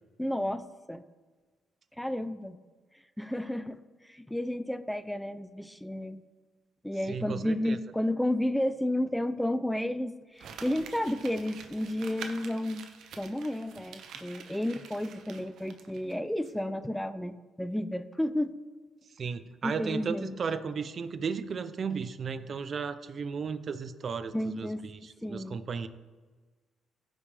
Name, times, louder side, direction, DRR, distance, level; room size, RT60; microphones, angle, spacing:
voice 1, 0.2-1.0 2.0-2.6 3.2-6.2 6.8-12.9 13.2-18.5 19.6-20.4 24.3-24.9 25.2-25.6, left 1 dB, 5° left, 12 dB, 0.4 m, -32 dB
voice 2, 7.1-7.8 19.2-24.7 25.0-25.9, right 5 dB, 50° right, 12 dB, 0.5 m, -34 dB
Crumpling crinkling, 10.4-16.1 16.4-16.5, right 6 dB, 75° right, 0.9 m, -47 dB
15.0 x 5.2 x 3.4 m, 1.3 s
cardioid pair, 90°, 0 cm